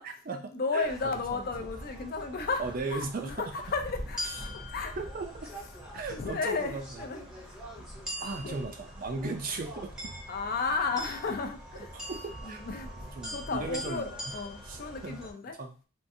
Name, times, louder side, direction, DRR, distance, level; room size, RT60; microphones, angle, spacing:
voice 1, 0.0-0.9 1.3-1.7 2.6-3.3 5.0-5.5 5.9-6.8 8.2-10.1 11.9-12.6 13.0-14.3 14.7-15.2 15.6-15.8, right 3 dB, 40° right, 5 dB, 0.4 m, -37 dB
voice 2, 0.5-5.0 6.1-7.9 8.2-8.6 10.3-11.9 12.4-15.6, left 4 dB, 45° left, 5 dB, 0.4 m, -34 dB
sound 1, 0.8-15.3, equal, 5° right, 0.7 m, -42 dB
3.6 x 2.4 x 2.6 m, 0.37 s
head